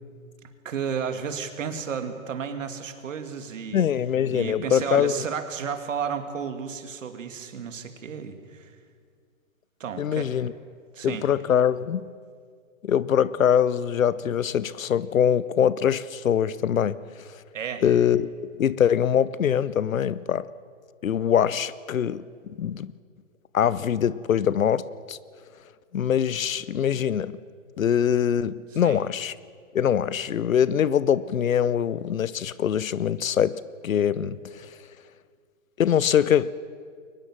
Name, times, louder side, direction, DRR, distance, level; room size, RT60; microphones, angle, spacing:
voice 1, 0.6-3.9 4.3-8.7 9.8-10.4 10.9-11.3 17.5-17.8 28.8-29.0, right 7 dB, 70° right, 2.5 m, -32 dB
voice 2, 3.7-5.2 10.0-10.5 11.0-12.1 12.8-17.0 17.3-17.4 17.8-20.5 21.0-22.2 22.6-22.9 23.5-25.2 25.9-27.4 27.8-29.3 29.7-34.7 35.8-36.5, left 9 dB, 80° left, 0.9 m, -23 dB
22.5 x 20.0 x 7.5 m
hypercardioid pair, 130°, 40 cm